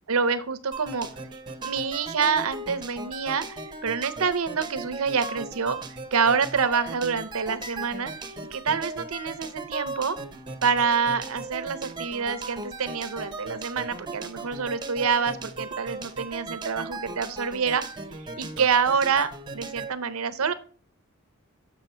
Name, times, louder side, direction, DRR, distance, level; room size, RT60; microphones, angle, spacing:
voice 1, 0.1-1.1 1.6-5.8 6.1-8.1 8.5-10.2 10.6-17.8 18.4-20.5, right 5 dB, 75° right, 13 dB, 0.7 m, -26 dB
sound 1, 0.7-19.9, right 3 dB, 20° right, 0.8 m, -37 dB
7.2 x 6.2 x 4.4 m, 0.40 s
head